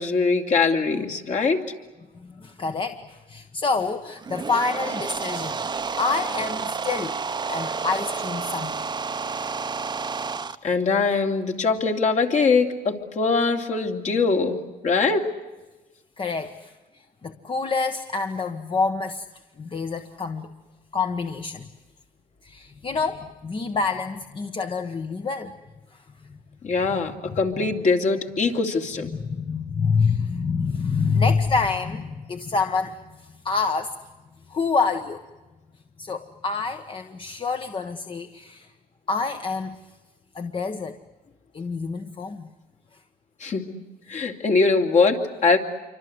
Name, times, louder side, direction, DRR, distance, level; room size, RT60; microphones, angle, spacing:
voice 1, 0.0-1.6 10.6-15.3 26.6-29.1 43.4-43.8 44.1-45.6, left 4 dB, 45° left, 3 dB, 2.9 m, -22 dB
voice 2, 2.2-5.6 6.0-7.2 7.5-8.9 9.4-9.5 10.1-10.3 16.2-19.3 19.6-20.5 20.9-21.7 22.4-25.5 25.9-26.0 26.3-26.4 29.1-33.0 33.4-33.9 34.5-35.2 36.0-38.7 39.1-39.8 40.3-41.0 41.5-42.5, left 4 dB, 30° left, 7 dB, 1.3 m, -27 dB
sound 1, 4.1-10.6, right 5 dB, 25° right, 1.0 m, -30 dB
27.0 x 25.0 x 8.0 m, 1.1 s
cardioid pair, 110°, 17 cm